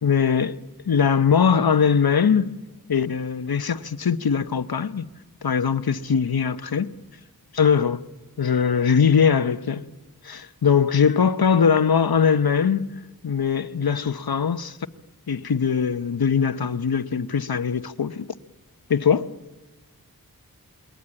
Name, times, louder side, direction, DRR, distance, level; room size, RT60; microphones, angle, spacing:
voice 1, 0.0-0.6 0.9-2.5 2.9-5.1 5.4-6.9 7.5-8.1 8.4-9.9 10.2-12.9 13.2-14.8 15.3-18.3 18.9-19.3, left 6 dB, 80° left, 1.0 m, -21 dB
28.0 x 22.5 x 8.8 m
wide cardioid pair, 60°, 36 cm